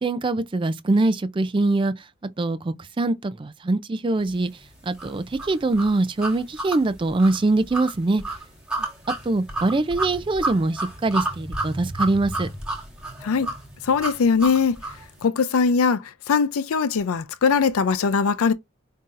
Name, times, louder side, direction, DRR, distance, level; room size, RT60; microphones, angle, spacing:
voice 1, 0.0-1.9 2.4-4.5 4.9-8.2 9.3-12.5, right 2 dB, 25° right, 0.3 m, -23 dB
sound 1, 5.0-15.1, right 2 dB, 5° right, 1.5 m, -31 dB
voice 2, 13.8-14.8 15.2-18.5, left 5 dB, 90° left, 0.5 m, -21 dB
5.4 x 2.7 x 2.5 m
head